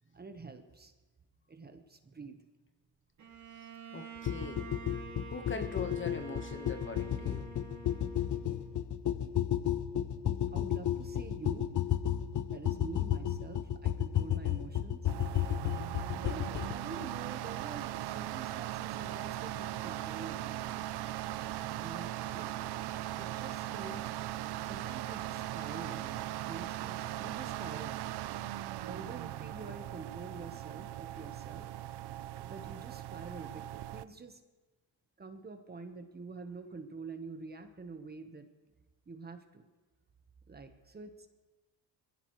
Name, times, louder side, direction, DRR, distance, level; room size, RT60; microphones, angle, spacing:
voice 1, 0.1-0.9 1.5-2.4 10.5-11.7 12.5-15.1 16.1-20.8 21.7-22.8 23.1-24.2 24.6-28.0 28.9-31.7 32.4-34.4 35.2-38.5 39.1-39.6 40.5-41.3, right 4 dB, 25° right, 7 dB, 1.2 m, -47 dB
Bowed string instrument, 3.2-8.9, right 5 dB, 45° right, 2.3 m, -48 dB
voice 2, 3.6-7.5, left 4 dB, 30° left, 7 dB, 1.3 m, -43 dB
sound 1, 4.3-16.7, left 11 dB, 45° left, 0.8 m, -33 dB
sound 2, 15.1-34.0, right 14 dB, 70° right, 0.7 m, -39 dB
22.0 x 16.0 x 3.2 m, 1.2 s
cardioid pair, 105°, 41 cm